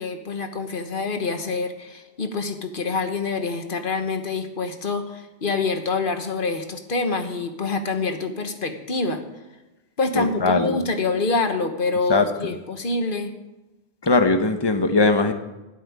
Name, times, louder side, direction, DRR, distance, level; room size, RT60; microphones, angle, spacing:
voice 1, 0.0-9.2 10.0-13.3, left 3 dB, 55° left, 7 dB, 1.5 m, -26 dB
voice 2, 10.1-10.8 12.1-12.5 14.0-15.3, left 3 dB, 25° left, 7 dB, 1.0 m, -20 dB
13.0 x 7.4 x 9.6 m, 1.0 s
omnidirectional pair, 1.0 m